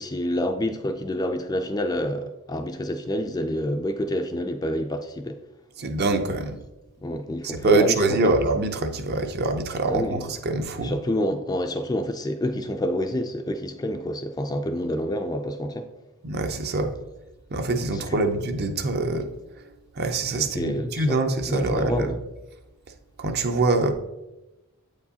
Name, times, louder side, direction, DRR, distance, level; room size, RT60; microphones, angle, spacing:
voice 1, 0.0-5.4 7.0-8.0 9.9-10.3 10.8-15.9 18.1-18.3 20.6-21.2 21.5-22.2, equal, 20° left, 0.3 m, -27 dB
voice 2, 5.8-6.6 7.4-11.0 16.2-17.0 17.5-19.7 19.9-22.1 23.2-23.9, right 3 dB, 45° right, 0.5 m, -25 dB
8.0 x 4.6 x 2.8 m
head